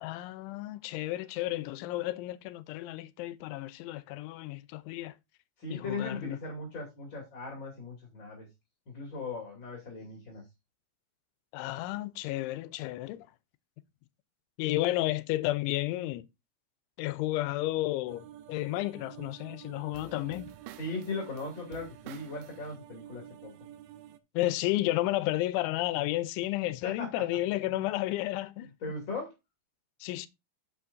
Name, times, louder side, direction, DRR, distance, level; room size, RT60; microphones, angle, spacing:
voice 1, 0.0-5.1 5.7-6.4 11.5-13.3 14.6-16.3 17.0-20.5 24.3-28.7 30.0-30.3, left 16 dB, 90° left, 3.1 m, -32 dB
voice 2, 5.6-8.5 8.9-10.4 20.8-23.5 26.8-27.2 27.7-27.9 28.8-29.3, left 3 dB, 30° left, 2.5 m, -38 dB
sound 1, 18.1-24.2, right 12 dB, 85° right, 3.2 m, -49 dB
8.5 x 8.0 x 2.6 m
omnidirectional pair, 5.3 m